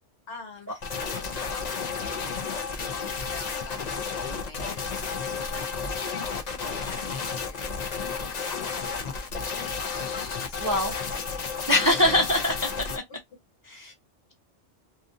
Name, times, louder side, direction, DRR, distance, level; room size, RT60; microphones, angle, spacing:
voice 1, 0.3-2.2 3.1-3.8 4.4-9.1 10.5-11.1, left 4 dB, 75° left, 1.4 m, -47 dB
sound 1, 0.8-13.0, left 5 dB, 45° left, 0.7 m, -32 dB
voice 2, 10.6-11.0 11.7-12.7 13.7-13.9, left 1 dB, 25° right, 0.5 m, -23 dB
2.8 x 2.5 x 2.5 m
omnidirectional pair, 1.2 m